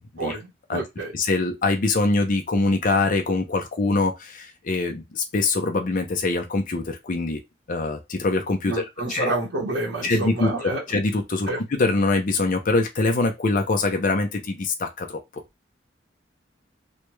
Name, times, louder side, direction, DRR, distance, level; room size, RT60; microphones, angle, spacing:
voice 1, 0.2-1.1 8.7-10.8 11.5-11.6, right 2 dB, 85° right, 1.1 m, -29 dB
voice 2, 1.1-7.4 7.7-8.8 9.1-9.3 10.0-15.2, left 3 dB, 45° left, 0.5 m, -24 dB
3.2 x 2.2 x 3.1 m
head